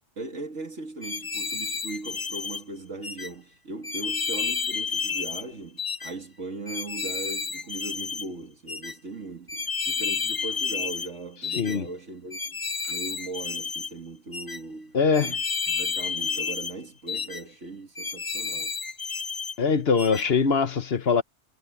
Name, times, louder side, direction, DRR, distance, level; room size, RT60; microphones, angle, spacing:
voice 1, 0.2-12.6 12.9-15.0 15.2-15.4 15.7-18.7, right 3 dB, 75° right, 2.8 m, -39 dB
sound 1, 1.0-2.6 3.0-3.3 3.8-5.4 5.8-6.1 6.7-8.3 8.7-8.9 9.5-11.1 11.4-11.8 12.3-13.9 14.3-14.6 15.1-16.7 17.1-17.4 17.9-19.5 20.0-20.2, left 5 dB, 25° left, 0.5 m, -31 dB
voice 2, 11.6-11.9 14.9-15.4 19.6-21.2, left 5 dB, 55° left, 1.2 m, -22 dB
omnidirectional pair, 1.2 m